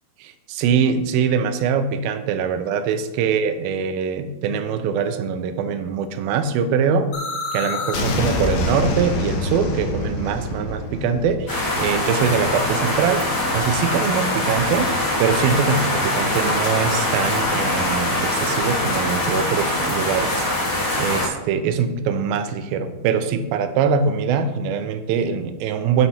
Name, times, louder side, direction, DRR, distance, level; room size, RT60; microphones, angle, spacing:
voice 1, 0.2-7.1 7.5-13.2 13.5-14.9 15.2-20.5 21.0-26.1, right 6 dB, 85° right, 8 dB, 2.3 m, -23 dB
sound 1, 7.1-12.9, left 2 dB, 75° left, 2.0 m, -26 dB
sound 2, 11.5-21.3, left 1 dB, 45° left, 1.3 m, -23 dB
9.3 x 4.3 x 4.2 m, 1.0 s
omnidirectional pair, 4.4 m